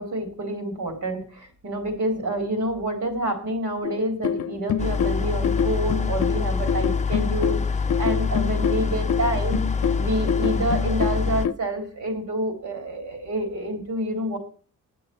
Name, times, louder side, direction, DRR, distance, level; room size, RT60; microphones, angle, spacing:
voice 1, 0.0-9.6 9.9-14.4, right 1 dB, 65° right, 4 dB, 4.0 m, -28 dB
sound 1, 3.8-11.5, left 8 dB, 65° left, 0.7 m, -26 dB
sound 2, 4.8-11.5, left 5 dB, 20° left, 0.6 m, -25 dB
8.9 x 7.8 x 7.8 m, 0.42 s
cardioid pair, 105°, 32 cm